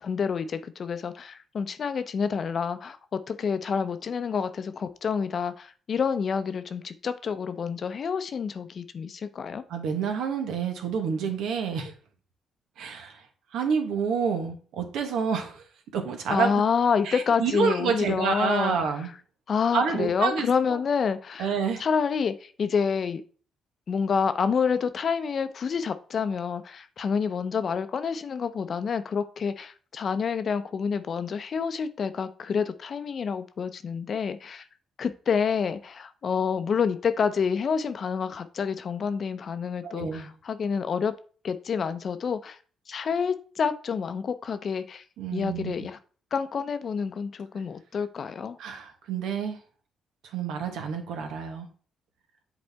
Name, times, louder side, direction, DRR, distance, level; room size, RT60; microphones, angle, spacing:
voice 1, 0.0-9.6 16.3-18.7 19.5-21.5 21.8-23.2 23.9-34.6 35.0-41.1 41.4-42.6 42.9-45.0 45.3-46.0 46.3-48.6, left 6 dB, 50° left, 11 dB, 0.6 m, -28 dB
voice 2, 9.7-11.9 12.8-13.2 13.5-15.6 15.9-16.5 17.0-19.1 19.7-20.5 21.4-21.8 39.8-40.3 45.2-45.8 48.6-49.6 50.3-51.7, right 6 dB, 85° right, 5 dB, 1.2 m, -28 dB
7.9 x 4.1 x 3.4 m, 0.41 s
cardioid pair, 90°, 0 cm